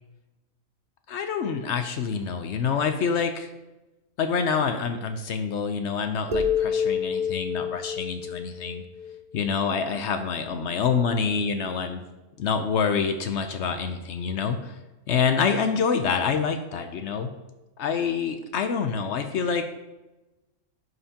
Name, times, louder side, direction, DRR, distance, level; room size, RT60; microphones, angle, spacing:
voice 1, 1.1-3.5 4.2-8.8 9.3-12.0 12.4-14.8 15.1-17.3 17.8-19.7, left 6 dB, 65° left, 7 dB, 0.8 m, -26 dB
sound 1, 6.3-9.8, left 6 dB, 70° right, 0.3 m, -28 dB
11.0 x 5.6 x 2.8 m, 1.0 s
omnidirectional pair, 1.5 m